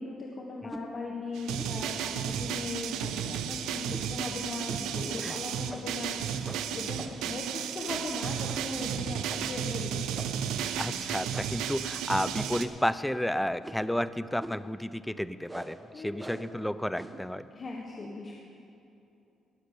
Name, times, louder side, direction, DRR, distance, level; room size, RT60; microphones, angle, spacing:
voice 1, 0.0-10.2 15.9-16.5 17.5-18.4, left 3 dB, 40° left, -1 dB, 1.4 m, -39 dB
sound 1, 0.7-0.9 1.6-1.8 2.2-2.5 3.0-3.2 3.9-4.2 4.7-4.8 5.1-5.3 5.7-6.0 6.4-7.3 7.8-8.2 8.5-8.7 9.3-9.6 10.1-10.5 11.3-11.7 12.3-12.8 13.6-13.9 14.4-14.7 15.5-15.8 16.2-16.5 16.9-17.3, right 1 dB, 10° right, 1.0 m, -44 dB
sound 2, 1.3-12.7, right 9 dB, 90° right, 0.6 m, -33 dB
voice 2, 10.7-17.5, equal, 5° left, 15 dB, 0.4 m, -32 dB
18.5 x 6.6 x 6.7 m, 2.8 s
cardioid pair, 90°, 0 cm